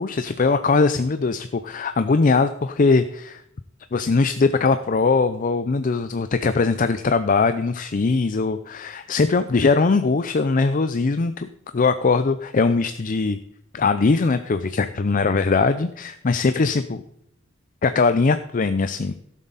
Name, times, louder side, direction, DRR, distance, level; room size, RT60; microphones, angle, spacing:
voice 1, 0.0-3.4 3.9-11.5 11.7-13.4 13.7-17.0 17.8-19.1, left 4 dB, 40° left, 10 dB, 0.5 m, -21 dB
16.5 x 7.3 x 4.0 m, 0.74 s
head